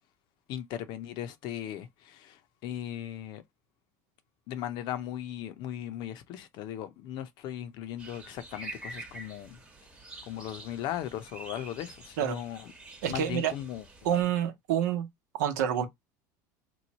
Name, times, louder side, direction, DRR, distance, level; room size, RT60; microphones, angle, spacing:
voice 1, 0.5-3.4 4.5-9.6 10.3-12.7 13.1-14.2, left 11 dB, 60° left, 0.7 m, -38 dB
sound 1, 8.0-14.2, right 2 dB, 15° right, 1.0 m, -47 dB
voice 2, 13.0-13.5 14.0-15.1 15.3-15.9, right 9 dB, 85° right, 0.9 m, -27 dB
3.1 x 2.3 x 4.1 m
supercardioid pair, 110°, 9 cm